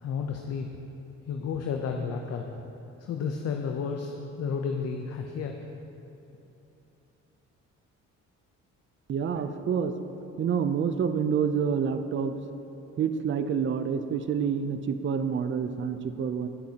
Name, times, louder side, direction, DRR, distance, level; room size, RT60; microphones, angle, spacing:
voice 1, 0.0-0.7 1.3-2.4 3.0-5.5, left 6 dB, 55° left, 3 dB, 0.7 m, -32 dB
voice 2, 9.1-9.9 10.4-12.3 13.0-16.5, right 7 dB, 40° right, 9 dB, 0.5 m, -28 dB
18.0 x 6.2 x 2.9 m, 2.9 s
cardioid pair, 90°, 30 cm